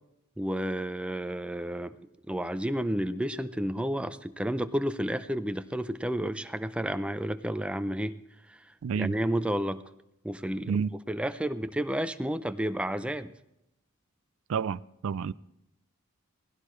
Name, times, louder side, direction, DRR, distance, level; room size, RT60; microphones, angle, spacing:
voice 1, 0.4-2.0 2.3-8.1 8.5-8.6 8.9-9.8 10.2-10.8 11.1-13.3, equal, 5° right, 0.5 m, -31 dB
voice 2, 8.8-9.1 10.7-10.9 14.5-15.3, right 6 dB, 65° right, 0.4 m, -29 dB
17.5 x 16.0 x 3.2 m
head